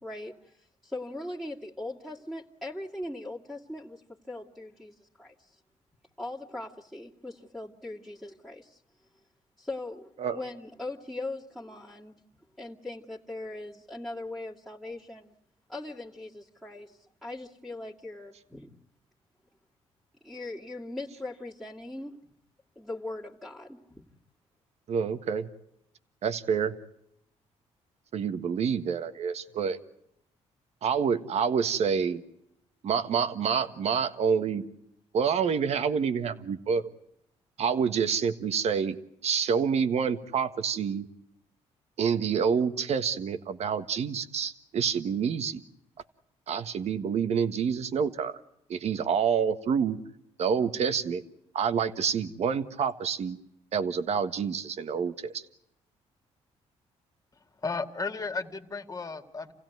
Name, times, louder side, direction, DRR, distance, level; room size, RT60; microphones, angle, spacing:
voice 1, 0.0-5.6 6.2-8.8 9.6-12.2 12.6-15.3 15.7-18.7 20.2-22.2 22.8-24.0, left 2 dB, ahead, -8 dB, 2.3 m, -40 dB
voice 2, 24.9-25.5 26.2-26.7 28.1-29.8 30.8-32.2 32.8-34.6 35.1-36.8 37.6-38.9 39.2-41.0 42.0-45.6 46.5-48.4 48.7-50.0 50.4-51.2 51.5-53.4 53.7-55.4, right 6 dB, 60° right, 11 dB, 1.5 m, -27 dB
voice 3, 57.6-59.5, left 4 dB, 30° left, 7 dB, 2.3 m, -34 dB
28.5 x 16.5 x 9.4 m, 0.79 s
cardioid pair, 80°, 12 cm